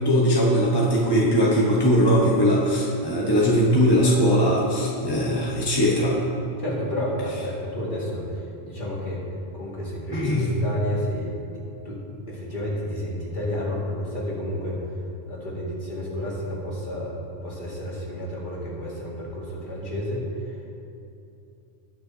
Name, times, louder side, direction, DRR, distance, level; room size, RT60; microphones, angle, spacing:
voice 1, 0.0-6.2 10.1-10.5, equal, 20° left, -5 dB, 1.0 m, -20 dB
voice 2, 6.6-9.2 9.5-11.3 11.8-14.8 15.3-17.1 17.4-20.6, equal, 40° left, -5 dB, 2.3 m, -31 dB
19.0 x 6.5 x 2.8 m, 2.7 s
omnidirectional pair, 1.3 m